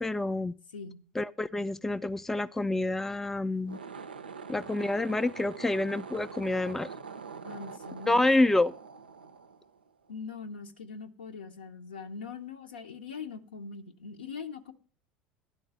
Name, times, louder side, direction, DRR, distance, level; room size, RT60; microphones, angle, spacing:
voice 1, 0.0-0.5 1.2-3.8 4.5-6.9 8.1-8.7, left 2 dB, 5° left, 0.3 m, -28 dB
voice 2, 0.7-1.0 7.4-8.6 10.1-14.7, left 5 dB, 80° left, 0.7 m, -42 dB
sound 1, 3.6-10.1, right 5 dB, 85° right, 0.4 m, -44 dB
11.0 x 3.9 x 7.5 m
figure-of-eight pair, 70°, 5 cm